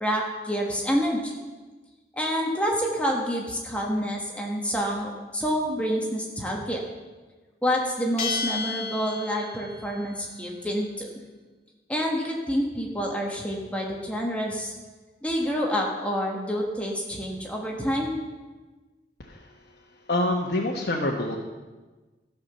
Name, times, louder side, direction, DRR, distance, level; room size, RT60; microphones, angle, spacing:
voice 1, 0.0-1.3 2.1-6.8 7.6-11.1 11.9-14.7 15.2-18.2, equal, 10° left, -1 dB, 1.4 m, -28 dB
Bell, 8.2-9.8, left 4 dB, 40° left, 1.9 m, -31 dB
voice 2, 20.1-21.4, left 1 dB, 60° left, -2 dB, 1.1 m, -26 dB
14.0 x 5.8 x 6.9 m, 1.3 s
head